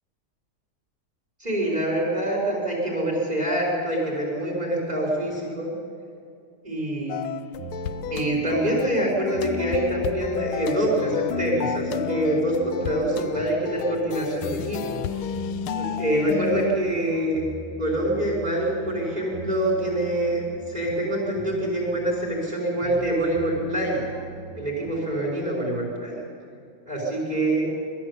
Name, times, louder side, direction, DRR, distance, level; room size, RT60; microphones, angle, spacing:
voice 1, 1.4-5.7 6.6-7.2 8.1-15.0 15.7-17.4 17.8-20.4 20.7-24.1 24.5-26.2 26.9-27.7, right 1 dB, 20° right, -6 dB, 5.0 m, -25 dB
sound 1, 7.1-16.8, left 10 dB, 80° left, 1.6 m, -31 dB
sound 2, 7.6-25.1, right 5 dB, 55° right, 2.1 m, -41 dB
22.0 x 14.0 x 8.4 m, 2.4 s
omnidirectional pair, 2.3 m